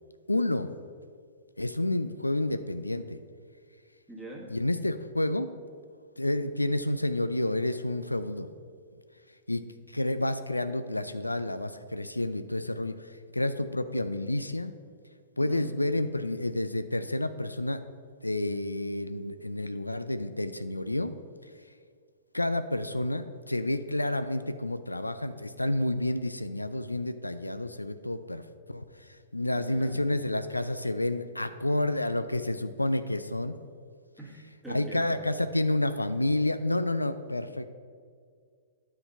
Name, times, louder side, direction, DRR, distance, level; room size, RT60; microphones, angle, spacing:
voice 1, 0.3-0.7 1.6-3.2 4.5-5.5 6.2-8.5 9.5-14.7 15.4-17.8 18.2-21.1 22.3-33.6 34.7-37.7, left 1 dB, 90° left, 11 dB, 0.3 m, -30 dB
voice 2, 4.1-4.6 15.5-15.7 29.5-30.1 34.2-35.2, right 2 dB, ahead, -6 dB, 1.8 m, -43 dB
9.9 x 3.8 x 5.6 m, 2.1 s
figure-of-eight pair, 110°, 0 cm